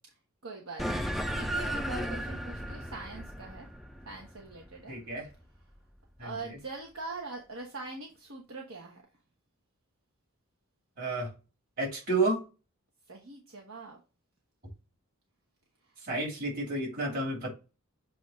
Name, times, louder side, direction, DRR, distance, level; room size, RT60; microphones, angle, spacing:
voice 1, 0.4-3.7 4.0-4.9 6.2-9.0 13.1-14.0, right 3 dB, 65° right, 0 dB, 1.1 m, -43 dB
sound 1, 0.8-5.6, equal, ahead, 0.4 m, -35 dB
voice 2, 4.9-5.3 6.2-6.6 11.0-11.3 11.8-12.4 16.0-17.5, right 2 dB, 40° right, -2 dB, 3.1 m, -31 dB
7.5 x 2.6 x 5.2 m, 0.30 s
head